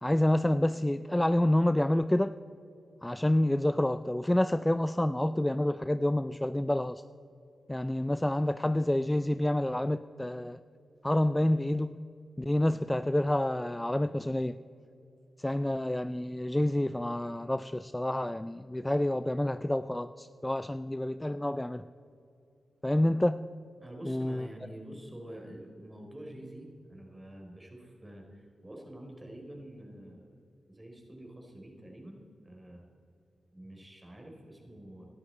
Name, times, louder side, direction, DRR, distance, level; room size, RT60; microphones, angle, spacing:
voice 1, 0.0-2.4 3.0-7.0 7.7-10.6 11.0-12.0 12.4-14.6 15.4-21.9 22.8-23.4 24.0-24.5, left 1 dB, 15° left, 13 dB, 0.4 m, -28 dB
voice 2, 23.8-30.3 30.7-32.9 33.5-35.1, right 1 dB, 20° right, 1 dB, 3.7 m, -47 dB
18.5 x 12.0 x 4.3 m, 2.5 s
supercardioid pair, 45°, 0 cm